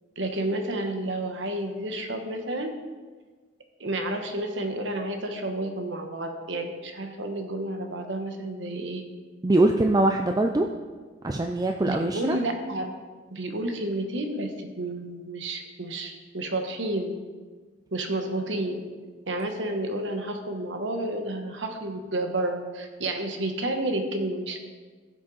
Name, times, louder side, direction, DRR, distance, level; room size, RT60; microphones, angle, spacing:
voice 1, 0.2-2.8 3.8-9.0 11.8-12.9 13.3-17.1 17.9-18.8 19.3-24.6, right 1 dB, 65° right, 5 dB, 1.1 m, -30 dB
voice 2, 9.4-10.7 11.2-12.4, right 2 dB, 20° right, 4 dB, 0.4 m, -22 dB
15.5 x 6.2 x 4.0 m, 1.4 s
head